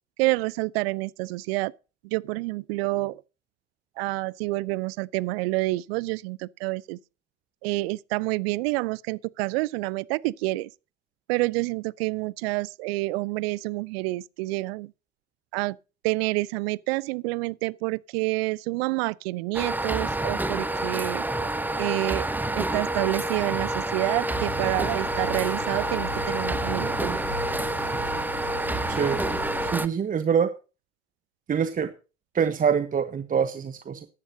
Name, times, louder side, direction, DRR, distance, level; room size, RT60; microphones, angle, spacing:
voice 1, 0.2-1.7 2.0-3.2 4.0-7.0 7.6-10.7 11.3-14.9 15.5-15.8 16.0-21.2 21.8-22.3 22.5-27.2, right 22 dB, 55° right, 0.6 m, -28 dB
sound 1, 19.5-29.9, right 2 dB, 5° right, 0.8 m, -28 dB
sound 2, 24.3-29.7, left 5 dB, 90° left, 2.2 m, -39 dB
voice 2, 28.9-29.2 29.6-30.5 31.5-31.9 32.3-34.1, right 7 dB, 25° right, 1.0 m, -25 dB
14.5 x 11.5 x 2.7 m
hypercardioid pair, 80°, 36 cm